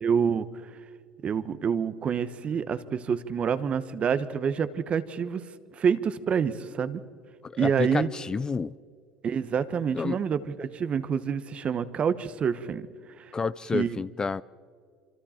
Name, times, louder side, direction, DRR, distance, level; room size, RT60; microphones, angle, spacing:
voice 1, 0.0-0.5 1.2-5.4 5.8-7.0 7.6-8.1 9.2-12.9 13.7-14.0, right 7 dB, 40° right, 1.3 m, -27 dB
voice 2, 7.4-8.7 9.9-10.2 13.3-14.4, left 4 dB, 25° left, 0.4 m, -29 dB
26.5 x 26.0 x 4.5 m
hypercardioid pair, 80°, 3 cm